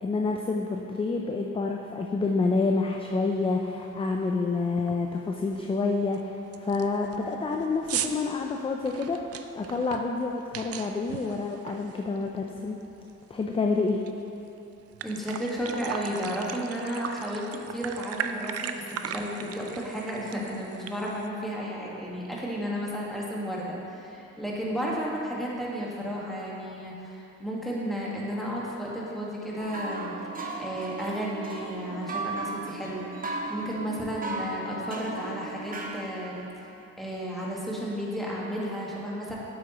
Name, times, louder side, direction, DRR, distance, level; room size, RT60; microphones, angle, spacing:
voice 1, 0.0-9.2 9.5-12.8 13.3-14.0, left 3 dB, 20° left, 1 dB, 0.4 m, -28 dB
sound 1, 3.2-3.3 3.7-4.0 4.3-4.4 4.8-5.1 5.5-5.6 6.1-6.2 6.5-12.5 12.8-14.1 14.5-14.6 14.8-21.3, right 8 dB, 55° right, 0.4 m, -38 dB
voice 2, 15.0-30.1 30.6-36.4 37.0-39.4, equal, ahead, -5 dB, 1.6 m, -33 dB
sound 2, 29.6-36.5, right 2 dB, 30° right, 0.9 m, -36 dB
8.0 x 7.7 x 3.0 m, 2.9 s
cardioid pair, 90°, 30 cm